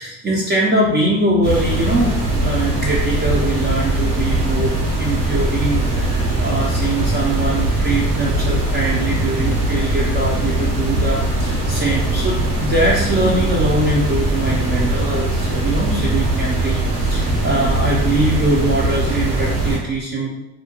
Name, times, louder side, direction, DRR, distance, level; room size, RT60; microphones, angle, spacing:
voice 1, 0.0-20.3, right 1 dB, 25° right, -5 dB, 0.6 m, -22 dB
sound 1, 1.4-19.8, right 2 dB, 85° right, 1.1 m, -20 dB
2.5 x 2.1 x 2.9 m, 0.91 s
hypercardioid pair, 50°, 46 cm